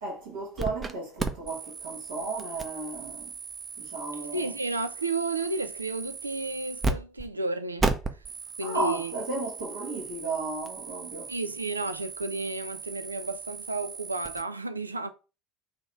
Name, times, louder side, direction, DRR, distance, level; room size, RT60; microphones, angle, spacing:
voice 1, 0.0-3.3 3.8-4.5 8.6-11.3, right 3 dB, 70° right, 1.2 m, -34 dB
sound 1, 0.6-0.9 1.2-6.9 7.2-7.3 7.8-14.4, right 4 dB, 25° right, 0.6 m, -35 dB
voice 2, 4.3-7.9 8.6-9.1 11.3-15.1, right 3 dB, 85° right, 0.3 m, -32 dB
3.9 x 2.8 x 4.5 m
figure-of-eight pair, 65°, 0 cm